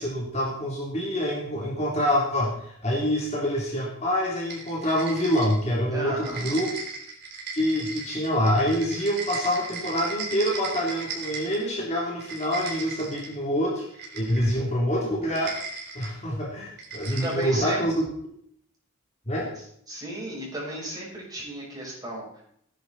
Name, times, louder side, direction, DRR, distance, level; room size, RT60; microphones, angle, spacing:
voice 1, 0.0-6.7 7.5-15.5 15.9-17.9 19.3-19.5, equal, 30° left, -3 dB, 3.4 m, -26 dB
sound 1, 4.5-5.8 6.1-11.7 12.1-13.4 13.9-14.6 15.2-16.1 16.8-17.8, right 4 dB, 45° right, 4.0 m, -37 dB
voice 2, 5.9-6.4 17.2-17.8 19.9-22.4, right 1 dB, 15° right, -4 dB, 6.6 m, -34 dB
17.5 x 10.5 x 4.3 m, 0.67 s
head